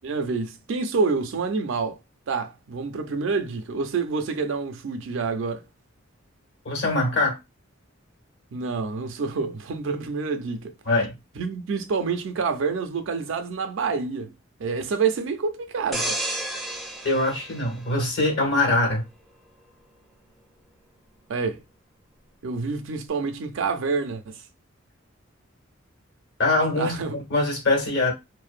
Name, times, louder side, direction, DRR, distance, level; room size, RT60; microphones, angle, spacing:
voice 1, 0.0-2.0 2.3-5.6 8.5-10.7 11.4-14.3 14.6-16.2 21.3-21.6 22.4-24.4 26.8-27.2, right 4 dB, 65° right, 0.4 m, -27 dB
voice 2, 6.6-7.4 10.9-11.1 17.0-19.0 26.4-27.0 27.3-28.1, left 2 dB, 60° left, 1.0 m, -22 dB
sound 1, 15.9-18.6 19.1-19.3, right 1 dB, ahead, 0.4 m, -32 dB
2.5 x 2.1 x 2.4 m
head